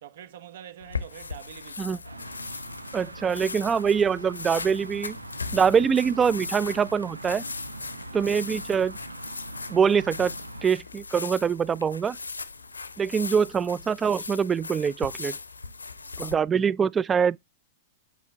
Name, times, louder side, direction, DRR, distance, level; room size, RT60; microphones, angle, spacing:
voice 1, 0.0-2.6 8.0-8.2 12.6-12.8 16.0-16.3, right 10 dB, 60° right, 1.0 m, -47 dB
sound 1, 0.8-16.3, left 4 dB, 85° left, 0.7 m, -38 dB
sound 2, 2.0-10.7, right 2 dB, 90° right, 0.7 m, -42 dB
voice 2, 2.9-5.2 5.5-7.4 8.1-9.0 9.7-10.3 10.6-12.2 13.0-15.3 16.2-17.4, right 6 dB, 20° right, 0.3 m, -24 dB
8.4 x 4.4 x 3.4 m
figure-of-eight pair, 100°, 0 cm